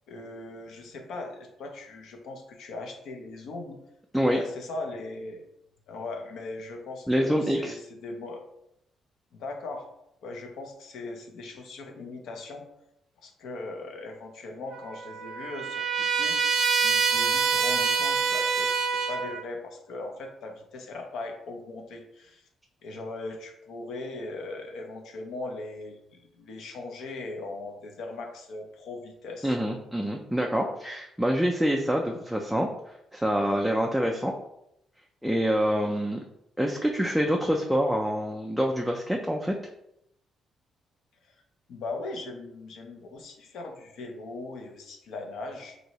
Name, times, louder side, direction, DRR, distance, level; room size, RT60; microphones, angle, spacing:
voice 1, 0.1-3.8 4.3-5.4 5.9-8.4 9.3-9.9 10.2-12.6 13.2-18.8 19.1-22.5 22.8-29.5 41.2-41.3 41.7-45.8, left 2 dB, 75° left, 3 dB, 0.6 m, -39 dB
voice 2, 7.1-7.8 29.4-32.7 33.1-34.3 35.2-36.2 36.6-39.5, equal, ahead, 1 dB, 0.3 m, -26 dB
Trumpet, 14.7-19.4, right 6 dB, 65° right, 0.4 m, -26 dB
3.0 x 2.7 x 2.9 m, 0.80 s
cardioid pair, 90°, 0 cm